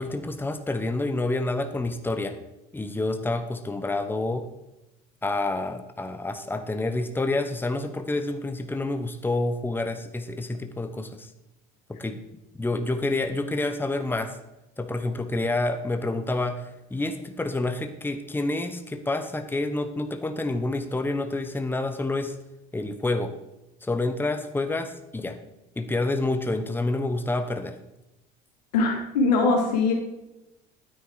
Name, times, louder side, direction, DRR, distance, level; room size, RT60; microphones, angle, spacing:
voice 1, 0.0-2.4 2.7-4.5 5.2-11.3 11.9-12.2 12.6-14.4 14.8-22.4 22.7-23.3 23.8-25.4 25.8-27.8, left 2 dB, 10° left, 8 dB, 1.1 m, -28 dB
voice 2, 28.7-29.9, left 3 dB, 90° left, 1 dB, 2.6 m, -21 dB
9.4 x 9.3 x 4.8 m, 0.95 s
hypercardioid pair, 75°, 20 cm